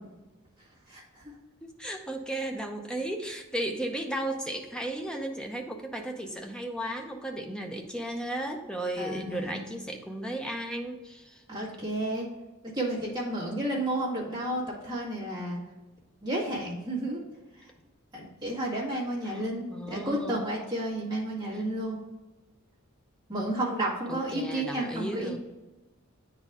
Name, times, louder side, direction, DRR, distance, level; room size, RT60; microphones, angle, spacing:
voice 1, 0.9-1.2 9.0-9.6 11.5-12.3 12.6-15.6 16.2-17.2 17.6-17.7 18.1-22.0 23.3-25.4, right 1 dB, 20° right, -6 dB, 1.8 m, -32 dB
voice 2, 1.6-11.4 19.3-19.4 19.7-20.4 24.1-25.4, right 1 dB, 5° left, 3 dB, 0.6 m, -35 dB
9.3 x 4.1 x 3.6 m, 1.1 s
head